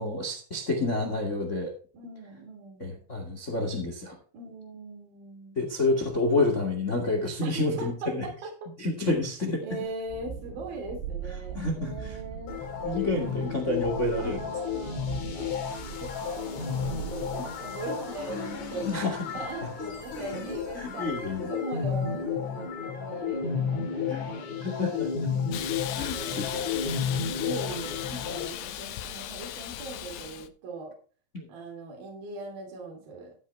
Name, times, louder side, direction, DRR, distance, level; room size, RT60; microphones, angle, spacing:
voice 1, 0.0-1.7 2.8-4.2 5.5-8.2 8.8-9.6 11.5-12.2 12.8-14.4 18.8-19.2 20.8-21.5 24.1-24.3 24.6-25.1 25.9-26.6 27.1-27.2 31.3-31.5, left 2 dB, 30° left, 3 dB, 1.3 m, -29 dB
voice 2, 1.9-3.0 4.3-5.6 7.4-8.7 9.6-12.6 13.1-13.5 14.2-15.6 16.0-18.9 19.3-24.5 26.1-27.0 27.4-31.0 31.5-33.3, right 3 dB, 55° right, 1 dB, 4.6 m, -40 dB
Thunderstorm, 9.8-21.4, right 8 dB, 80° right, 5.9 m, -42 dB
sound 1, 12.5-28.5, left 6 dB, 50° left, 2.8 m, -32 dB
Hiss, 25.5-30.5, left 11 dB, 80° left, 3.2 m, -37 dB
15.0 x 8.1 x 3.3 m, 0.40 s
omnidirectional pair, 5.2 m